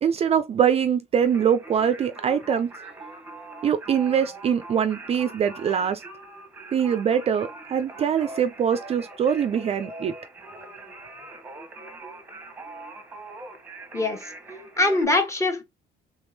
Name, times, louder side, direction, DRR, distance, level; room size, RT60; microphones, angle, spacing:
voice 1, 0.0-2.7 3.6-6.0 6.7-10.1, right 8 dB, 35° right, 0.4 m, -23 dB
Singing, 1.2-15.0, right 2 dB, 10° right, 1.0 m, -42 dB
voice 2, 13.9-14.3 14.8-15.6, left 2 dB, 15° left, 1.1 m, -23 dB
3.4 x 3.4 x 2.7 m
cardioid pair, 110°, 17 cm